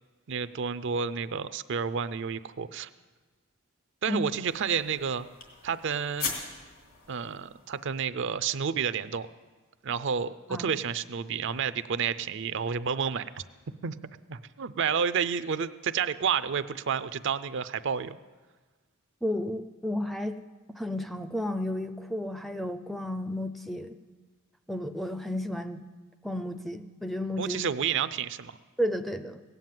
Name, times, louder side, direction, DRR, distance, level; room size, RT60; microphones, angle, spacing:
voice 1, 0.3-2.9 4.0-5.3 5.6-6.3 7.1-9.3 9.8-13.4 13.8-14.0 14.3-18.2 27.4-28.5, right 6 dB, 55° right, 13 dB, 0.5 m, -30 dB
sound 1, 4.4-8.0, left 5 dB, 65° left, 2.9 m, -40 dB
voice 2, 19.2-20.4 20.8-23.9 24.7-25.8 26.2-27.6 28.8-29.4, left 1 dB, ahead, 6 dB, 0.5 m, -32 dB
17.0 x 9.2 x 7.5 m, 1.4 s
head